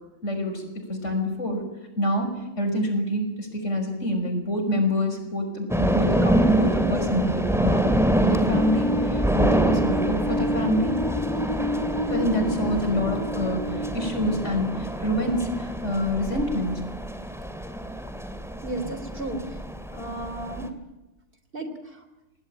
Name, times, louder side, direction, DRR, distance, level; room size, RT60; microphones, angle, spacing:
voice 1, 0.2-1.6 2.0-2.3 2.6-7.9 8.2-11.0 12.1-16.8, left 1 dB, 90° left, 5 dB, 6.2 m, -27 dB
sound 1, 5.7-20.7, right 1 dB, ahead, 2.5 m, -26 dB
sound 2, 8.5-15.4, equal, 20° left, 1.7 m, -30 dB
voice 2, 18.6-19.4 19.9-20.7 21.5-21.7, right 2 dB, 50° right, 9 dB, 3.6 m, -33 dB
29.0 x 19.0 x 9.0 m, 1.0 s
omnidirectional pair, 1.2 m